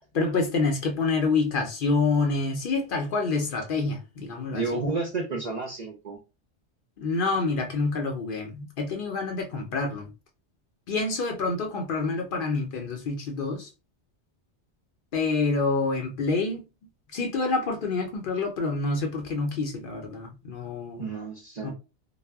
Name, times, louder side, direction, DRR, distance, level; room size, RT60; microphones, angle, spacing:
voice 1, 0.1-4.8 7.0-10.1 10.9-13.7 15.1-16.7 17.1-21.0 21.6-21.7, left 3 dB, 60° left, 0.6 m, -27 dB
voice 2, 4.5-6.2 21.0-21.7, right 3 dB, 55° right, 0.5 m, -31 dB
2.1 x 2.0 x 3.3 m
omnidirectional pair, 1.2 m